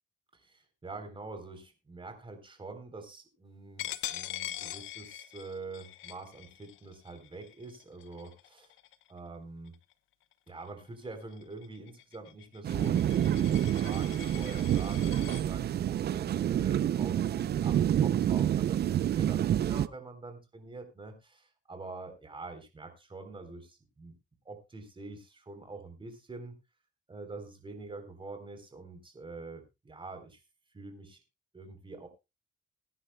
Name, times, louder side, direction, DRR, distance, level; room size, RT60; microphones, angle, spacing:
voice 1, 0.3-8.7 9.1-9.8 10.5-24.2 24.5-26.6 27.1-30.4 30.7-31.2 31.5-32.1, right 3 dB, 25° right, 7 dB, 3.7 m, -45 dB
Coin (dropping), 3.8-9.2 9.7-9.9 10.3-15.4, left 14 dB, 85° left, 0.9 m, -43 dB
sound 1, 12.6-19.9, right 10 dB, 55° right, 0.6 m, -28 dB
21.0 x 9.9 x 2.3 m, 0.25 s
cardioid pair, 90°, 20 cm